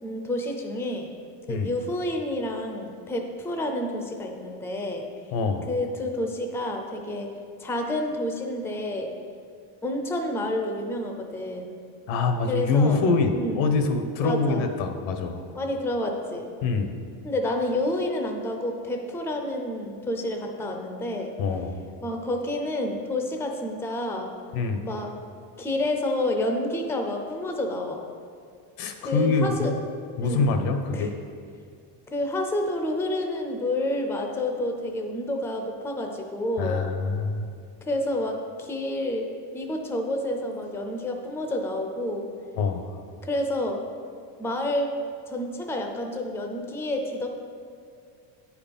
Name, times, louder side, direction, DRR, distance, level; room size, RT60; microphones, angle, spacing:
voice 1, 0.0-1.1 1.5-5.1 5.7-7.3 7.6-9.1 9.8-11.7 12.5-13.0 13.3-13.7 14.2-14.7 15.5-16.5 17.2-21.3 22.0-24.3 24.8-25.1 25.6-28.0 29.0-29.7 30.2-30.4 30.9-31.1 32.1-36.8 37.8-42.3 43.2-43.8 44.4-44.9 45.3-47.3, left 1 dB, 5° left, 3 dB, 0.5 m, -29 dB
voice 2, 5.3-5.7 12.1-15.4 16.6-16.9 21.4-21.8 24.5-24.8 28.8-29.8 30.2-31.1 36.6-37.5 42.6-42.9, left 4 dB, 80° left, 6 dB, 1.1 m, -25 dB
9.5 x 4.9 x 5.2 m, 2.3 s
cardioid pair, 150°, 44 cm